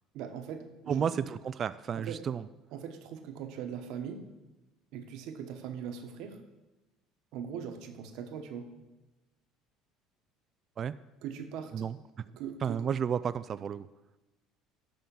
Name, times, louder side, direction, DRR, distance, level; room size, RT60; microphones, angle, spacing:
voice 1, 0.1-1.3 2.0-2.2 2.7-4.2 4.9-6.4 7.3-8.7 11.2-11.8 12.3-12.9, right 8 dB, 70° right, 6 dB, 1.2 m, -40 dB
voice 2, 0.9-2.5 10.8-10.9 11.7-12.2 12.6-13.9, right 7 dB, 40° right, 14 dB, 0.3 m, -32 dB
11.5 x 3.8 x 7.0 m, 1.1 s
supercardioid pair, 110°, 0 cm